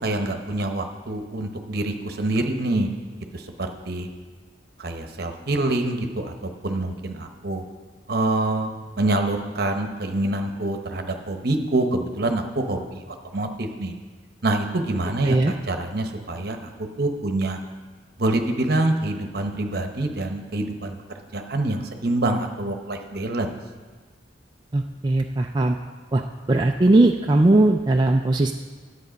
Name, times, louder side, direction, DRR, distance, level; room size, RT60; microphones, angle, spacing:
voice 1, 0.0-2.9 3.3-4.1 4.8-7.6 8.1-8.7 9.0-13.0 13.3-14.0 14.4-17.6 18.2-21.0 21.3-23.5, right 2 dB, 50° right, 5 dB, 1.0 m, -26 dB
voice 2, 24.7-25.8 26.1-26.2 26.5-28.5, right 2 dB, 20° right, 2 dB, 0.3 m, -19 dB
11.0 x 8.1 x 5.1 m, 1.4 s
head